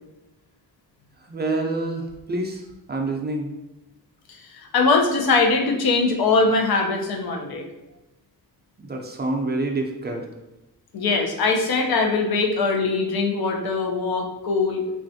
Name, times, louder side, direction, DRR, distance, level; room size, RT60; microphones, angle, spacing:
voice 1, 1.2-3.5 8.8-10.3, right 2 dB, 30° right, 2 dB, 0.4 m, -27 dB
voice 2, 4.5-7.6 10.9-14.8, left 3 dB, 85° left, 2 dB, 0.6 m, -21 dB
3.2 x 2.4 x 2.6 m, 0.94 s
wide cardioid pair, 105°, 36 cm